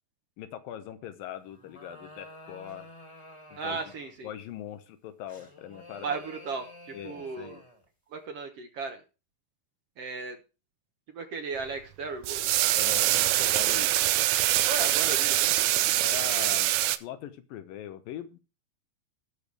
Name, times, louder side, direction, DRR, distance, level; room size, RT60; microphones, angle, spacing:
voice 1, 0.4-2.9 3.5-3.8 4.2-6.2 6.9-7.6 12.8-13.9 16.0-16.7 17.0-18.4, left 11 dB, 80° left, 10 dB, 2.8 m, -41 dB
sound 1, 1.4-4.3 5.3-7.9, left 1 dB, 10° left, 1.6 m, -50 dB
voice 2, 3.6-4.3 6.0-7.6 8.1-9.0 10.0-10.4 11.1-12.6 14.7-16.0, right 4 dB, 60° right, 5 dB, 1.7 m, -36 dB
sound 2, 12.2-17.0, right 15 dB, 80° right, 1.7 m, -24 dB
18.5 x 6.9 x 3.4 m, 0.31 s
omnidirectional pair, 4.0 m